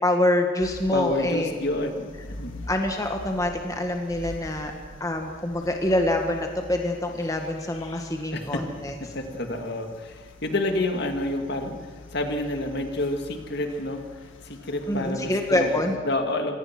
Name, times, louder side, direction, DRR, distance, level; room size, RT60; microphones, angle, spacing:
voice 1, 0.0-1.6 2.7-4.7 5.0-8.9 14.9-15.9, left 1 dB, 15° left, 3 dB, 1.6 m, -25 dB
sound 1, 0.6-16.0, left 1 dB, 75° left, 1.9 m, -45 dB
voice 2, 0.9-2.7 8.3-8.6 9.1-11.8 12.1-14.0 14.4-15.7 16.0-16.5, left 1 dB, 55° left, 5 dB, 2.2 m, -29 dB
26.0 x 18.5 x 6.1 m, 1.6 s
head